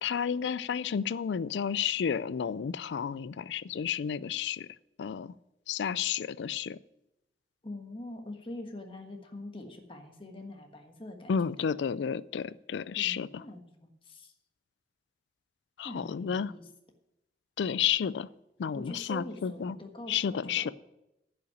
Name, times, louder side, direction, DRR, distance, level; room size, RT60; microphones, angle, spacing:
voice 1, 0.0-4.7 5.0-5.3 5.7-6.8 11.3-13.4 15.8-16.5 17.6-18.3 18.6-19.8 20.1-20.7, left 7 dB, 80° left, 19 dB, 0.4 m, -31 dB
voice 2, 7.6-11.4 12.9-14.3 15.8-16.7 18.7-20.7, left 1 dB, 30° left, 3 dB, 1.4 m, -44 dB
10.5 x 5.7 x 8.4 m, 0.89 s
head